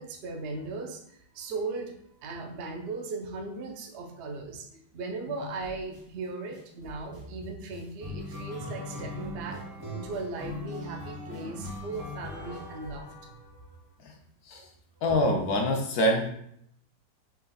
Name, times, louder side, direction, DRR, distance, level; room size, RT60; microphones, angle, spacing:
voice 1, 0.0-1.9 2.2-9.6 9.9-13.8, right 3 dB, 80° right, 3 dB, 0.5 m, -38 dB
sound 1, 5.6-6.0 6.5-13.7, left 2 dB, 30° right, 0.4 m, -40 dB
voice 2, 15.0-16.3, equal, 65° left, 2 dB, 1.0 m, -25 dB
5.6 x 3.9 x 2.3 m, 0.71 s
omnidirectional pair, 2.0 m